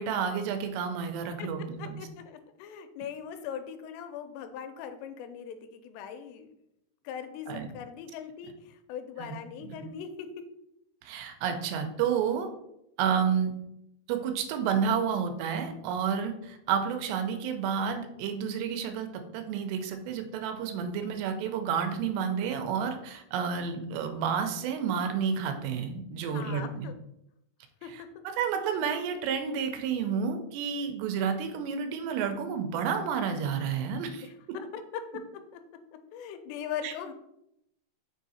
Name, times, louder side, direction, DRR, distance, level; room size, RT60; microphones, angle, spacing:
voice 1, 0.0-2.0 7.5-7.7 9.2-9.3 9.6-9.8 11.0-12.5 13.0-13.5 14.1-19.1 19.3-26.9 27.9-34.3 36.8-36.9, right 7 dB, 85° right, 6 dB, 2.8 m, -30 dB
voice 2, 1.8-6.5 7.0-10.4 26.3-27.0 27.8-28.2 34.2-35.6 36.1-37.1, left 8 dB, 85° left, 8 dB, 2.7 m, -40 dB
6.2 x 3.7 x 4.1 m, 0.80 s
omnidirectional pair, 4.8 m